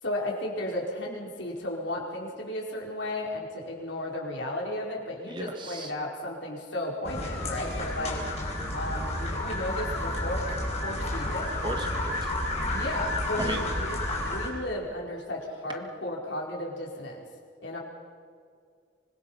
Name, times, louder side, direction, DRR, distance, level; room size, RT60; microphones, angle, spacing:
voice 1, 0.0-8.2 8.7-11.5 12.7-14.0 14.2-17.2 17.6-17.8, left 1 dB, 75° left, -2 dB, 4.5 m, -34 dB
voice 2, 5.3-5.9 11.3-12.3 13.4-13.7, right 1 dB, 25° right, 5 dB, 1.5 m, -36 dB
sound 1, 7.0-14.5, left 1 dB, 35° left, 5.1 m, -31 dB
25.0 x 20.5 x 5.6 m, 2.2 s
head